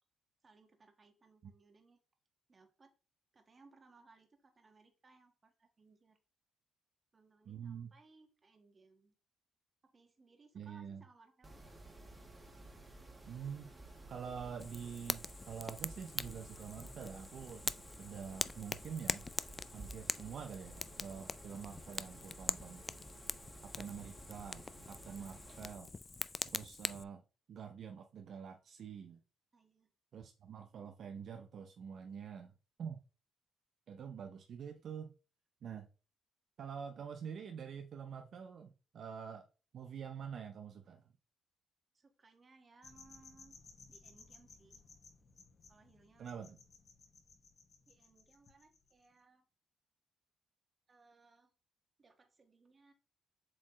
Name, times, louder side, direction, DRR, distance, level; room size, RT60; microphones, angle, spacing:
voice 1, 0.4-2.0 2.5-2.9 3.3-6.2 7.1-9.1 9.8-11.5 25.1-25.4 29.5-29.9 41.9-43.6 43.9-44.8 45.7-46.5 47.9-49.5 50.9-51.5 52.0-52.9, right 3 dB, 35° right, 1.4 m, -65 dB
voice 2, 7.5-7.9 10.5-11.0 13.3-13.7 14.1-19.3 19.7-22.8 23.6-25.9 26.5-27.2 27.5-29.2 30.1-32.5 32.8-33.0 33.9-35.1 35.6-35.9 36.6-39.5 39.7-41.0 46.2-46.6, right 7 dB, 60° right, 0.6 m, -46 dB
Mechanisms, 11.4-25.7, right 2 dB, 20° right, 1.6 m, -54 dB
Fire, 14.6-27.0, left 3 dB, 25° left, 0.3 m, -43 dB
sound 1, 42.8-49.1, left 4 dB, 50° left, 2.8 m, -60 dB
7.4 x 4.3 x 3.1 m
cardioid pair, 90°, 0 cm